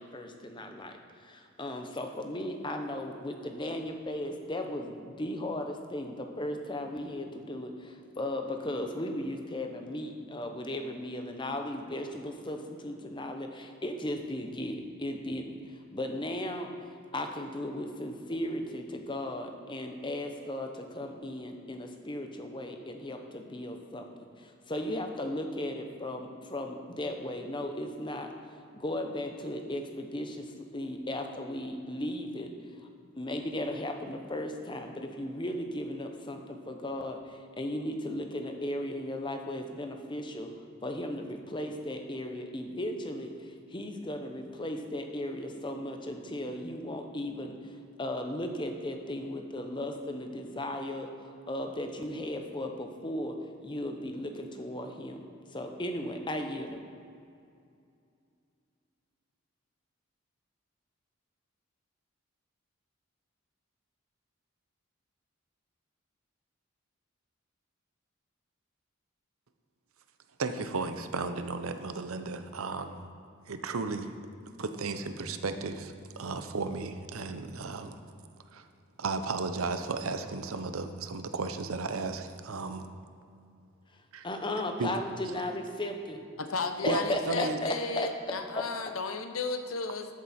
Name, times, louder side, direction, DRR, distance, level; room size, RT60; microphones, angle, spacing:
voice 1, 0.0-16.7 17.1-24.1 24.4-28.3 28.7-32.8 33.2-40.5 40.8-53.4 53.6-55.2 55.5-56.8 84.2-86.2 86.8-88.1 88.5-88.6, left 1 dB, 20° left, 5 dB, 0.8 m, -36 dB
voice 2, 70.4-73.0 73.5-74.2 74.6-78.0 78.5-78.7 79.0-82.9 84.1-84.3 84.8-84.9 86.9-87.6, right 3 dB, 90° right, 9 dB, 0.7 m, -34 dB
voice 3, 86.4-90.1, left 3 dB, 80° left, 7 dB, 0.8 m, -34 dB
13.5 x 7.7 x 4.3 m, 2.4 s
head